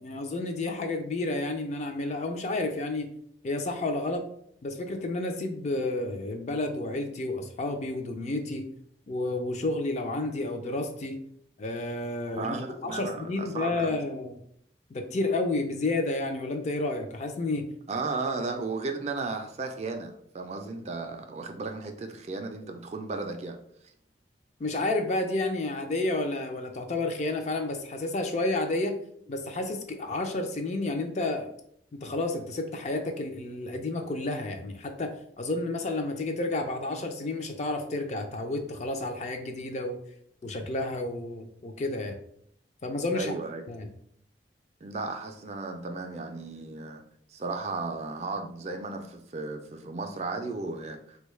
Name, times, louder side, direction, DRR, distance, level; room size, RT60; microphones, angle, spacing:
voice 1, 0.0-3.1 3.4-4.2 4.6-8.6 9.1-11.2 11.6-12.6 12.8-14.3 14.9-17.7 24.6-28.9 29.3-31.5 31.9-40.0 40.4-42.1 42.8-43.3 43.7-43.9, left 2 dB, 40° left, 5 dB, 0.4 m, -31 dB
voice 2, 12.3-14.0 17.9-23.6 43.1-43.6 44.8-47.0 47.3-51.2, right 3 dB, 35° right, 4 dB, 0.3 m, -35 dB
3.4 x 2.2 x 3.1 m, 0.68 s
head